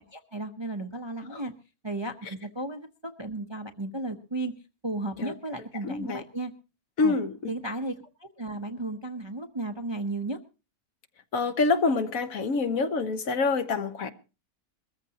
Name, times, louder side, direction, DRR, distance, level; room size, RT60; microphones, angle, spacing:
voice 1, 0.1-1.5 1.8-4.5 4.8-6.5 7.0-7.1 7.5-10.4, right 2 dB, 25° right, 0.7 m, -34 dB
voice 2, 5.8-6.2 7.0-7.5 11.3-14.1, left 4 dB, 65° left, 1.5 m, -26 dB
22.0 x 14.0 x 2.9 m
omnidirectional pair, 1.6 m